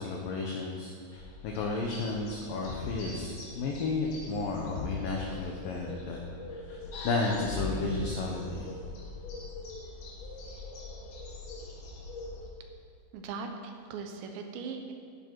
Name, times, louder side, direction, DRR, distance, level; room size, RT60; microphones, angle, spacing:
voice 1, 0.0-6.2 6.5-8.7, left 3 dB, 85° left, 0 dB, 1.9 m, -33 dB
sound 1, 1.1-12.5, left 2 dB, 60° left, 3.4 m, -42 dB
voice 2, 13.1-14.9, right 5 dB, 75° right, 4 dB, 3.1 m, -39 dB
14.5 x 10.0 x 4.7 m, 2.3 s
omnidirectional pair, 5.5 m